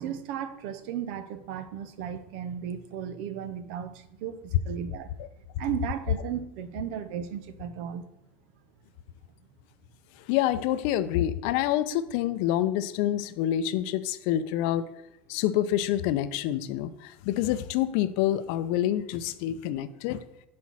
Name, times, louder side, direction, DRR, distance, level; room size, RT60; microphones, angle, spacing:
voice 1, 0.0-5.1 5.6-8.1, right 9 dB, 75° right, 12 dB, 0.7 m, -35 dB
voice 2, 10.3-14.9 15.3-20.2, left 12 dB, 70° left, 13 dB, 0.5 m, -27 dB
5.8 x 4.2 x 6.1 m, 0.81 s
supercardioid pair, 115°, 6 cm